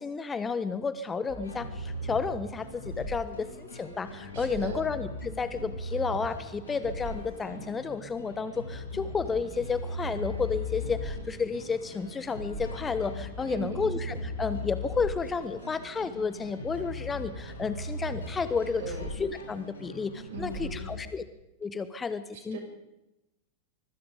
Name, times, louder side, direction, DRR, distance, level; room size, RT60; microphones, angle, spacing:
voice 1, 0.0-21.2 21.6-22.6, left 5 dB, 15° left, 13 dB, 1.2 m, -32 dB
sound 1, 1.3-21.0, left 1 dB, 70° left, 7.9 m, -38 dB
voice 2, 4.3-4.8 13.5-13.9 18.8-19.1 20.3-20.8 22.5-22.6, right 4 dB, 55° right, 4 dB, 6.6 m, -38 dB
24.5 x 23.0 x 5.2 m, 0.92 s
figure-of-eight pair, 90°, 0 cm